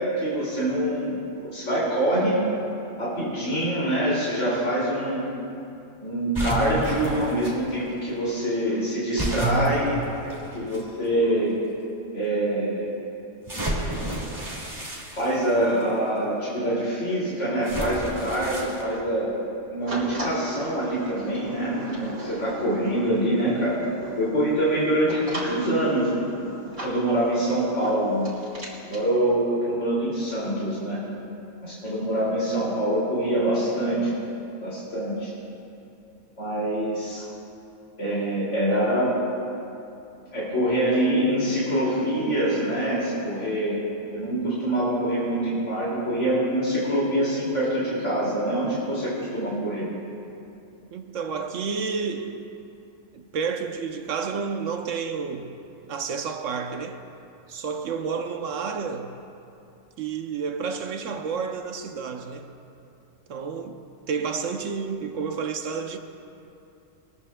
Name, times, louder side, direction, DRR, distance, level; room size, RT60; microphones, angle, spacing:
voice 1, 0.0-2.4 3.0-5.3 6.0-10.0 10.5-11.6 12.1-12.9 15.1-19.4 19.7-23.7 24.2-26.5 26.8-28.3 28.8-31.0 31.6-34.1 34.6-35.3 36.4-37.3 38.0-39.1 40.3-43.8 44.1-49.9, right 1 dB, 70° left, 2.9 m, -25 dB
sound 1, 6.3-7.5 9.2-10.8 11.6-11.7 13.5-15.8 17.6-18.8, right 1 dB, 25° right, 2.3 m, -30 dB
sound 2, 19.9-29.0, right 1 dB, 50° right, 3.2 m, -37 dB
voice 2, 50.9-52.5 53.1-55.6 55.9-57.0 57.5-59.2 60.0-62.5 63.3-66.0, right 5 dB, 80° right, 1.1 m, -30 dB
21.5 x 14.0 x 2.2 m
omnidirectional pair, 1.3 m